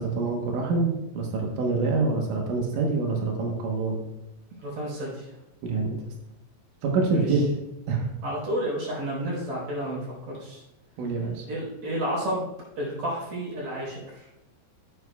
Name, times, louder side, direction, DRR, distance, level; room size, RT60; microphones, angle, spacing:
voice 1, 0.0-4.0 5.6-6.0 6.8-7.4 7.9-8.1 11.0-11.5, right 4 dB, 75° right, 0 dB, 1.9 m, -26 dB
voice 2, 4.6-5.3 7.1-7.4 8.2-10.6 11.5-12.5 12.8-14.3, equal, 40° right, -4 dB, 5.2 m, -31 dB
13.5 x 9.6 x 2.3 m, 0.95 s
omnidirectional pair, 5.4 m